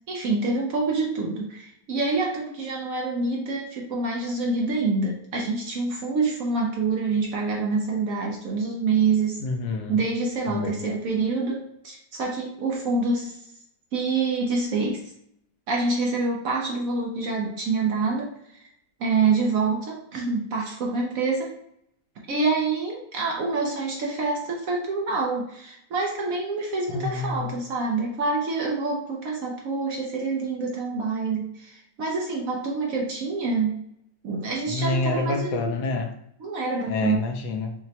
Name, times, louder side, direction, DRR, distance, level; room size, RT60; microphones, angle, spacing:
voice 1, 0.1-9.4 9.9-13.4 13.9-15.1 15.7-18.7 19.0-21.5 22.3-33.8 34.2-35.7 36.4-37.2, right 3 dB, 70° right, -1 dB, 0.8 m, -26 dB
voice 2, 9.4-10.0 10.5-10.8 26.9-27.5 34.7-36.1 36.9-37.7, left 3 dB, 70° left, 4 dB, 1.1 m, -27 dB
5.8 x 2.1 x 2.8 m, 0.75 s
omnidirectional pair, 2.1 m